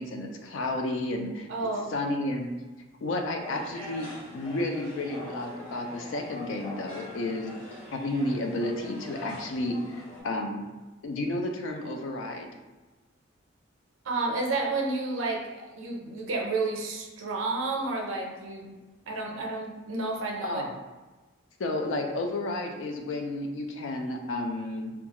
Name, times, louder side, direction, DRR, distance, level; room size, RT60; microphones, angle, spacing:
voice 1, 0.0-1.5 1.9-2.5 3.0-4.1 4.3-7.5 7.9-10.6 11.0-12.5 20.4-20.7 21.6-24.9, left 2 dB, 70° left, 3 dB, 0.4 m, -31 dB
voice 2, 1.5-1.9 14.1-18.8 19.1-20.6, right 3 dB, 80° right, 0 dB, 0.5 m, -31 dB
sound 1, 3.4-10.2, left 1 dB, 30° left, 1.4 m, -43 dB
2.3 x 2.3 x 2.8 m, 1.2 s
head